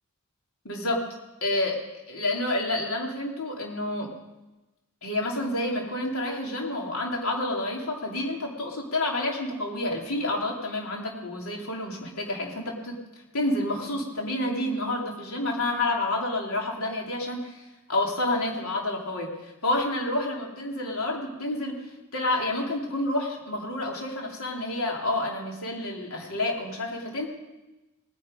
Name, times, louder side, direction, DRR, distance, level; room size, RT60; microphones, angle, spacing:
voice 1, 0.6-1.1 1.4-4.1 5.0-13.0 13.3-27.3, left 1 dB, 90° left, 0 dB, 3.1 m, -29 dB
19.0 x 9.8 x 5.2 m, 1.1 s
head